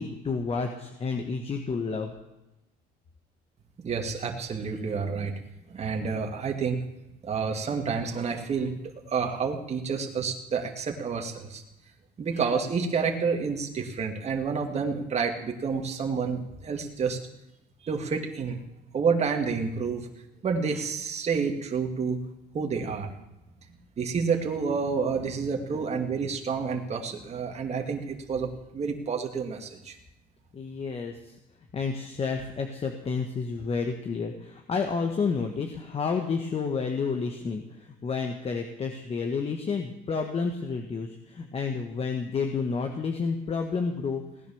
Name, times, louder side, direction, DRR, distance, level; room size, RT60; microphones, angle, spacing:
voice 1, 0.0-2.1 25.7-25.8 30.5-31.4 31.7-44.2, left 5 dB, 35° left, 4 dB, 1.6 m, -30 dB
voice 2, 3.8-5.3 5.7-6.8 7.2-8.7 9.1-11.6 12.2-17.2 17.8-18.6 18.9-20.1 20.4-22.2 22.5-23.1 24.0-30.0, right 5 dB, 40° right, 2 dB, 2.3 m, -29 dB
17.5 x 10.5 x 7.2 m, 0.94 s
cardioid pair, 110°, 17 cm